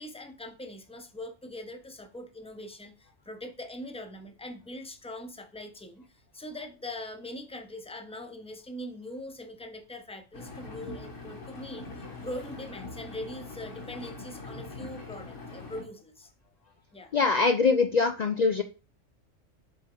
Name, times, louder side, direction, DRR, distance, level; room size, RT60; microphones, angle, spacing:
voice 1, 0.0-6.1 6.3-16.3 16.9-17.1, left 1 dB, 5° left, 5 dB, 0.6 m, -42 dB
Engine, 10.3-15.8, left 2 dB, 70° left, 1.8 m, -42 dB
voice 2, 17.1-18.6, left 4 dB, 90° left, 8 dB, 0.3 m, -23 dB
6.9 x 3.6 x 4.4 m, 0.33 s
omnidirectional pair, 1.3 m